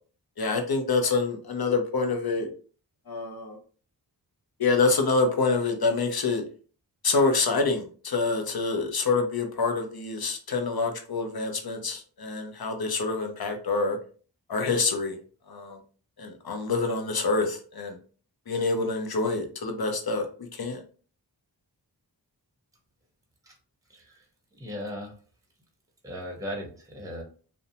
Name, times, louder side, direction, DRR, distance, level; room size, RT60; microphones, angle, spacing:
voice 1, 0.4-2.5 3.1-3.6 4.6-6.4 7.0-14.0 14.5-15.2 15.5-15.8 16.2-18.0 18.5-20.3 20.5-20.8, left 3 dB, 55° left, 4 dB, 0.7 m, -26 dB
voice 2, 23.9-24.2 24.5-25.1 26.0-27.2, equal, 10° right, 2 dB, 0.8 m, -37 dB
2.6 x 2.1 x 2.7 m, 0.40 s
cardioid pair, 40°, 44 cm